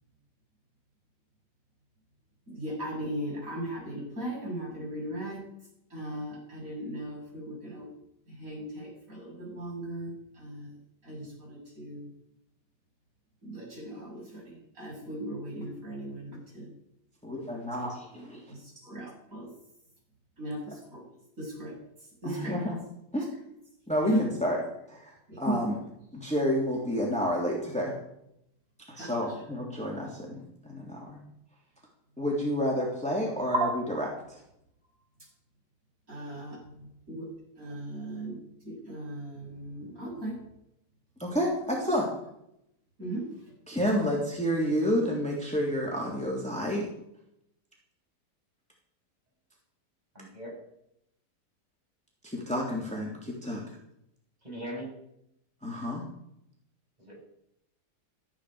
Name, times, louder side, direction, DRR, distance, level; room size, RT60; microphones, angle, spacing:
voice 1, 2.5-5.4 5.9-7.9 8.4-10.1 10.4-10.7 11.0-12.1 13.4-16.7 18.5-18.6 18.8-19.5 20.4-20.6 20.9-21.0 21.4-21.7 22.2-22.6 24.0-24.2 25.3-25.6 29.0-29.1 33.5-33.7 36.1-36.6 37.1-37.3 37.6-38.4 38.6-40.4 43.0-43.2, right 1 dB, 50° right, -2 dB, 7.8 m, -36 dB
voice 2, 17.2-18.4 22.2-22.8 23.1-23.2 23.9-24.6 24.9-25.1 25.4-25.8 26.1-27.9 28.9-31.2 32.2-34.1 41.2-42.1 43.7-46.8 52.2-53.6 55.6-56.0, equal, 5° left, -2 dB, 3.2 m, -30 dB
voice 3, 50.1-50.5 54.4-54.9 57.1-57.2, equal, 25° right, -1 dB, 6.5 m, -39 dB
17.0 x 14.0 x 5.1 m, 0.79 s
omnidirectional pair, 1.8 m